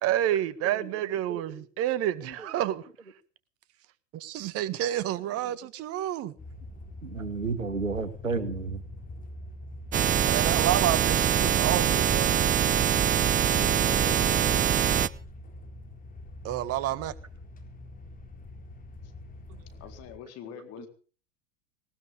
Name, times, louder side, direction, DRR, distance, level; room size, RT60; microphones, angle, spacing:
voice 1, 0.0-2.9 4.1-6.3 10.3-12.3 16.4-17.1, right 12 dB, 40° right, 1.8 m, -29 dB
voice 2, 0.7-1.6 2.2-2.5 5.5-5.6 6.2-6.3 7.0-8.8 11.4-11.5 20.8-20.9, right 4 dB, 90° right, 2.1 m, -35 dB
sound 1, 6.4-20.2, left 1 dB, 20° left, 4.0 m, -45 dB
sound 2, 9.9-15.1, right 9 dB, 20° right, 0.8 m, -23 dB
voice 3, 13.4-14.7 19.8-20.9, left 9 dB, 40° left, 4.0 m, -43 dB
19.5 x 19.5 x 3.6 m
figure-of-eight pair, 90°, 38 cm